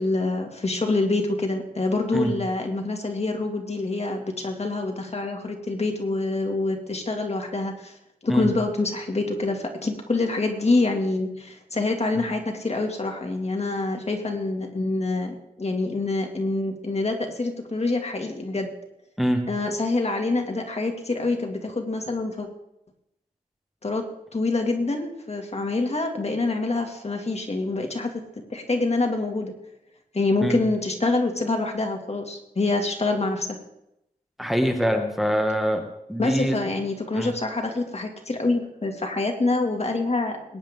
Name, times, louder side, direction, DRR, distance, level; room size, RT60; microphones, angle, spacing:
voice 1, 0.0-7.9 8.2-18.8 19.5-22.5 23.8-24.1 24.3-28.1 28.5-29.5 30.1-33.6 36.2-40.6, left 2 dB, 45° left, 2 dB, 2.3 m, -26 dB
voice 2, 34.4-35.8 36.1-36.6 37.1-37.3, equal, ahead, 3 dB, 1.8 m, -23 dB
21.5 x 10.0 x 3.7 m, 0.83 s
wide cardioid pair, 65°, 16 cm